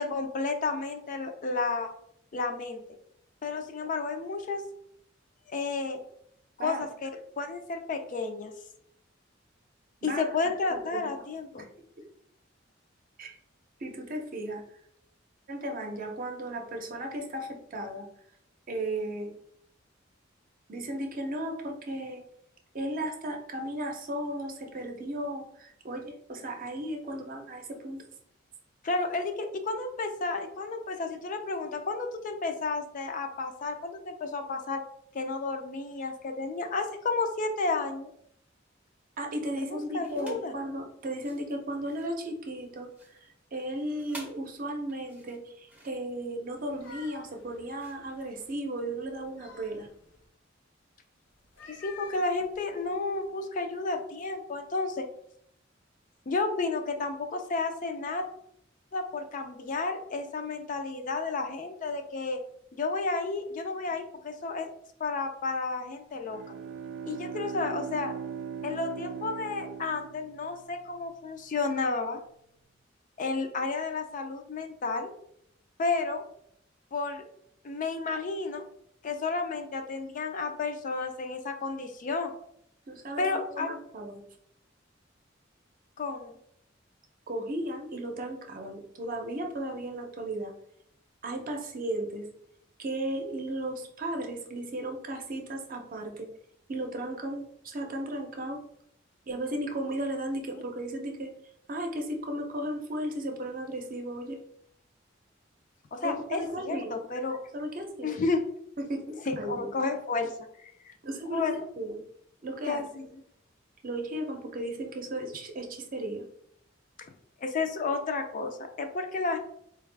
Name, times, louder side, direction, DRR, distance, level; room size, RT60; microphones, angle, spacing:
voice 1, 0.0-1.9 2.3-2.8 3.4-4.6 5.5-6.0 6.6-7.1 7.4-8.5 10.0-11.7 28.8-34.8 35.1-38.1 39.7-40.5 51.7-55.1 56.3-58.3 58.9-62.4 62.7-64.7 65.0-66.4 67.0-68.2 68.6-72.2 73.2-75.1 75.8-76.2 76.9-77.2 77.6-78.6 79.0-82.3 83.2-83.7 86.0-86.3 100.5-100.6 105.9-107.4 108.0-108.4 109.3-110.3 110.6-110.9 111.3-111.6 112.7-113.1 117.4-119.4, left 3 dB, 45° left, 6 dB, 0.4 m, -32 dB
voice 2, 10.7-11.0 11.6-11.7 13.2-13.3 13.8-14.6 15.5-18.1 18.7-19.3 20.7-22.2 22.7-28.0 39.2-49.9 82.9-83.3 83.5-84.2 87.3-90.5 91.2-92.3 92.8-96.3 96.7-98.6 99.3-101.3 101.7-104.4 106.0-107.0 107.5-108.2 108.8-109.7 111.0-112.0 112.4-112.8 113.8-116.3, right 1 dB, 45° right, 3 dB, 0.6 m, -35 dB
sound 1, 40.0-40.5 41.1-48.9, right 1 dB, 5° right, 0.6 m, -52 dB
sound 2, 46.5-48.6 49.1-50.3 51.4-53.2, left 5 dB, 75° left, 0.9 m, -51 dB
Bowed string instrument, 66.1-70.9, right 7 dB, 85° right, 0.3 m, -39 dB
3.9 x 2.3 x 3.3 m, 0.71 s
head